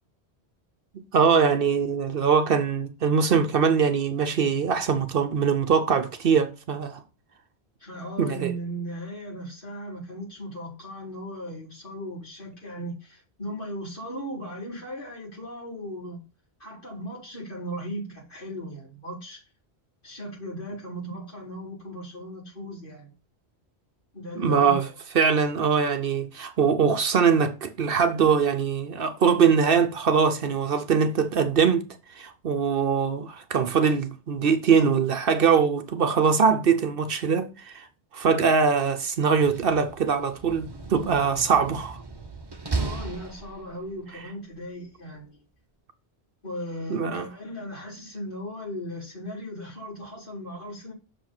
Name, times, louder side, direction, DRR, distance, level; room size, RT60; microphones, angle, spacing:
voice 1, 0.9-7.0 8.2-8.5 24.4-24.9 25.2-31.8 32.2-37.9 38.1-42.0 46.9-47.2, right 6 dB, 60° right, 0.9 m, -22 dB
voice 2, 7.8-16.2 16.6-19.4 20.0-23.1 24.1-24.9 25.2-25.3 42.7-45.4 46.4-50.9, equal, 55° left, 4.8 m, -37 dB
Slam, 39.3-44.0, right 3 dB, 25° right, 1.0 m, -35 dB
6.5 x 5.1 x 5.9 m
omnidirectional pair, 1.1 m